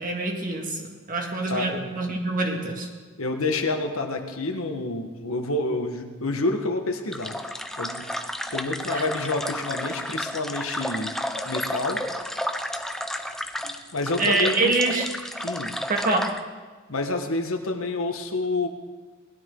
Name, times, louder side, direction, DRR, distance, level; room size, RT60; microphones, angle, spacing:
voice 1, 0.0-2.9 8.9-9.1 14.2-15.1 15.9-16.3, right 2 dB, 35° right, 1 dB, 1.9 m, -25 dB
voice 2, 3.2-7.3 7.8-8.0 8.5-11.1 11.5-12.0 13.6-14.8 15.4-15.8 16.9-18.7, left 2 dB, 70° left, 4 dB, 1.5 m, -28 dB
sound 1, 7.1-16.4, left 1 dB, ahead, 0.6 m, -32 dB
20.0 x 12.5 x 3.9 m, 1.4 s
head